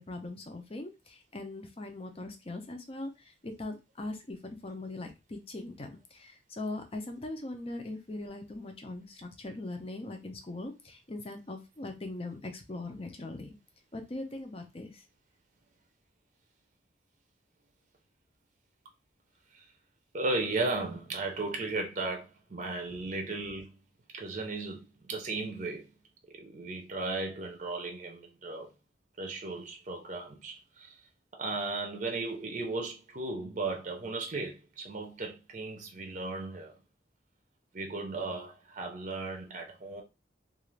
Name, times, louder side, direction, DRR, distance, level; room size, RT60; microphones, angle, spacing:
voice 1, 0.0-3.1 3.4-13.5 13.9-14.9, left 2 dB, 30° left, 0.6 m, -40 dB
voice 2, 20.1-23.7 24.1-25.9 26.4-28.7 29.2-31.0 31.4-36.7 37.7-40.0, right 3 dB, 40° right, 0.6 m, -36 dB
2.4 x 2.4 x 3.1 m
head